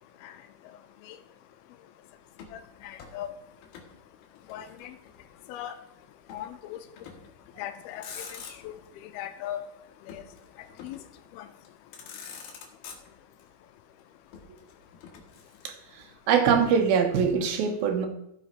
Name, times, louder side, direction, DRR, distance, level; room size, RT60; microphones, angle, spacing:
Motor vehicle (road), 2.3-4.0 4.2-5.3 6.3-6.5 7.0-7.4 7.8-8.9 10.1-11.1 11.6-11.7 11.9-13.4 14.3-16.0, left 6 dB, 70° left, 3.0 m, -46 dB
voice 1, 2.5-3.3 4.5-5.0 5.5-5.8 6.3-6.8 7.6-9.6 10.1-10.2 10.8-11.0 11.3-11.5, left 11 dB, 85° left, 9 dB, 2.6 m, -39 dB
voice 2, 15.6-18.1, right 6 dB, 75° right, 6 dB, 2.8 m, -24 dB
14.5 x 5.7 x 4.4 m, 0.77 s
omnidirectional pair, 4.5 m